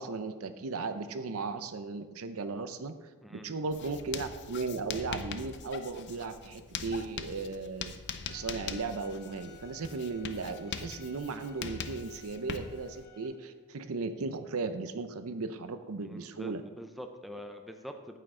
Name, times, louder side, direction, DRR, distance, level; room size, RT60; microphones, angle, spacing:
voice 1, 0.0-2.9 3.3-7.9 8.3-16.6, right 4 dB, 70° right, 10 dB, 0.6 m, -36 dB
voice 2, 3.2-3.5 16.0-18.2, equal, ahead, 5 dB, 0.5 m, -45 dB
Writing, 3.7-13.0, left 6 dB, 50° left, 0.5 m, -42 dB
Bowed string instrument, 8.2-13.3, left 6 dB, 35° left, 3.2 m, -57 dB
9.0 x 8.3 x 3.8 m, 1.3 s
head